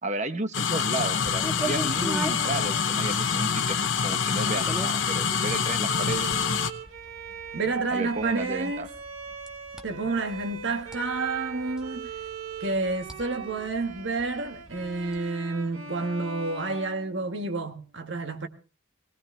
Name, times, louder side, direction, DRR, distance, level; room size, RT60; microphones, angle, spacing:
voice 1, 0.0-6.3 7.9-8.9, right 2 dB, 35° right, 1.0 m, -33 dB
sound 1, 0.5-6.7, left 6 dB, 65° left, 0.9 m, -26 dB
sound 2, 1.0-15.2, right 1 dB, 5° right, 1.4 m, -41 dB
Bowed string instrument, 1.9-17.7, right 4 dB, 80° right, 2.0 m, -42 dB
voice 2, 7.5-8.9 9.8-12.1 12.6-18.5, right 3 dB, 60° right, 1.5 m, -29 dB
20.5 x 17.5 x 3.3 m
head